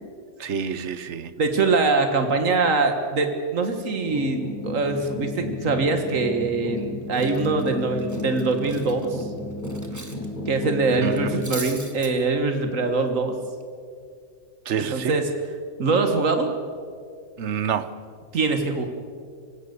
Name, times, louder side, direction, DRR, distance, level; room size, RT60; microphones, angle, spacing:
voice 1, 0.4-1.3 11.0-11.4 14.7-15.2 17.4-18.0, right 7 dB, 65° right, 1.1 m, -28 dB
voice 2, 1.4-9.3 10.5-13.4 14.8-15.3 15.8-16.6 18.3-18.9, right 3 dB, 90° right, 1.9 m, -23 dB
sound 1, 4.1-11.4, left 1 dB, 40° left, 3.8 m, -33 dB
Cutlery silverware, 6.8-6.9 7.1-10.3 10.5-10.7 11.1-12.1, right 1 dB, 15° right, 1.5 m, -39 dB
26.0 x 16.5 x 6.8 m
omnidirectional pair, 1.3 m